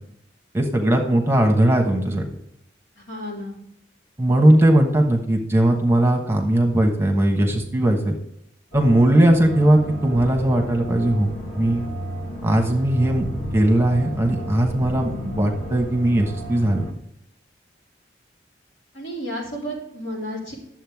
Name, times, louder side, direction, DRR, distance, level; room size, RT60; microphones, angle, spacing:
voice 1, 0.5-2.2 4.2-8.1 8.7-11.3 11.5-11.8 12.4-13.2 13.5-16.8, right 1 dB, 15° right, 2 dB, 1.1 m, -19 dB
voice 2, 3.0-3.6 18.9-20.5, equal, 80° left, -4 dB, 4.1 m, -32 dB
sound 1, 8.7-16.9, equal, 35° left, 1.5 m, -33 dB
11.0 x 7.5 x 3.5 m, 0.77 s
head